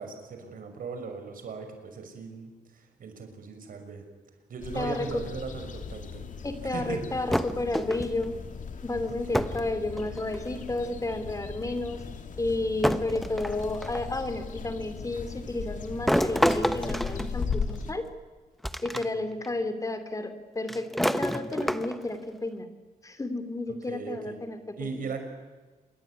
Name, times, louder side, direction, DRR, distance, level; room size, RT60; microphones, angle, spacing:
voice 1, 0.0-4.0 4.5-6.3 6.7-7.1 9.1-9.5 18.9-19.3 21.3-21.7 23.7-24.4 24.8-25.2, right 5 dB, 70° right, 6 dB, 6.1 m, -39 dB
sound 1, 4.6-17.9, left 5 dB, 60° left, 2.6 m, -38 dB
voice 2, 4.7-5.2 6.4-8.4 8.8-12.0 12.4-18.0 18.8-22.7 23.0-25.0, left 2 dB, 20° left, 10 dB, 2.9 m, -32 dB
sound 2, 7.3-8.3 9.3-9.7 10.0-10.6 11.6-11.7 12.8-14.1 16.1-17.9 18.6-19.0 19.4-19.5 20.7-22.2, equal, ahead, 1.2 m, -28 dB
27.5 x 22.5 x 9.8 m, 1.3 s
cardioid pair, 110°, 15 cm